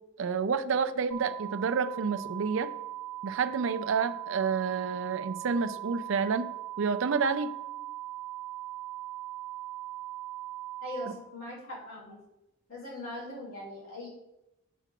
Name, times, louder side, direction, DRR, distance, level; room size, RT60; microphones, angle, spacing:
voice 1, 0.2-2.7 3.2-6.5 6.8-7.5, right 5 dB, 65° right, 10 dB, 0.4 m, -29 dB
sound 1, 1.1-11.1, right 15 dB, 5° left, 1.0 m, -40 dB
voice 2, 10.8-12.2 12.7-14.1, left 1 dB, 90° left, -7 dB, 2.6 m, -40 dB
8.0 x 2.9 x 5.8 m, 0.92 s
head